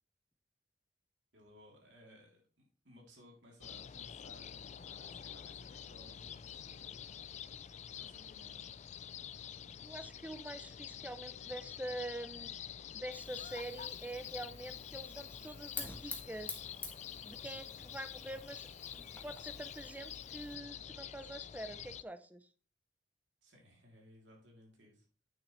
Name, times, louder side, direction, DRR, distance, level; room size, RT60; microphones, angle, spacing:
voice 1, 1.3-7.0 7.9-8.7 23.4-25.0, equal, 70° right, -1 dB, 3.2 m, -60 dB
sound 1, 3.6-22.0, left 9 dB, 40° left, 0.3 m, -47 dB
voice 2, 9.8-12.5 12.9-16.6 17.2-18.7 18.9-22.5, right 1 dB, 10° right, 10 dB, 0.6 m, -45 dB
Fire, 13.1-20.5, left 3 dB, 10° left, 1.4 m, -50 dB
9.0 x 6.9 x 3.2 m, 0.38 s
head